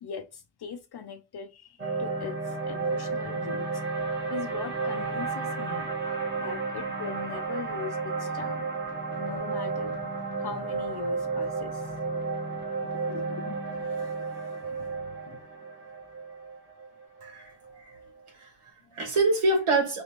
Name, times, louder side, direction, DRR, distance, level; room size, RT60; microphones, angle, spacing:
voice 1, 0.0-3.7 4.3-5.9 6.4-8.7 9.2-9.9 10.4-11.9 12.7-14.1 14.6-14.9 15.3-15.4, left 6 dB, 55° left, 0.5 m, -40 dB
sound 1, 1.8-18.1, right 4 dB, 20° right, 1.0 m, -32 dB
voice 2, 17.2-17.5 17.8-17.9 18.3-20.0, right 2 dB, 80° right, 1.5 m, -26 dB
3.0 x 3.0 x 2.8 m
wide cardioid pair, 135°, 50 cm